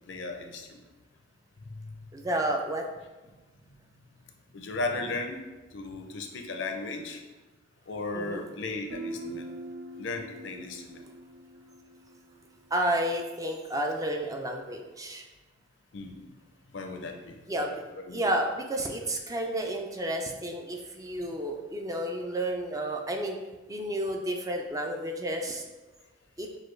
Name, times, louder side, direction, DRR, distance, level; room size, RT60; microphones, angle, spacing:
voice 1, 0.1-0.8 1.7-1.9 3.7-3.8 4.5-5.4 5.7-7.2 7.9-9.5 10.0-11.0 15.9-16.2 16.7-17.7 18.0-18.2, left 3 dB, 70° left, 4 dB, 0.5 m, -36 dB
voice 2, 2.1-2.8 8.1-8.4 12.7-15.2 17.5-17.8 18.1-23.4 23.7-25.6 26.4-26.5, right 1 dB, 20° right, 2 dB, 0.4 m, -31 dB
Guitar, 8.9-12.5, right 1 dB, 80° right, 0.5 m, -42 dB
6.3 x 2.3 x 3.2 m, 1.2 s
head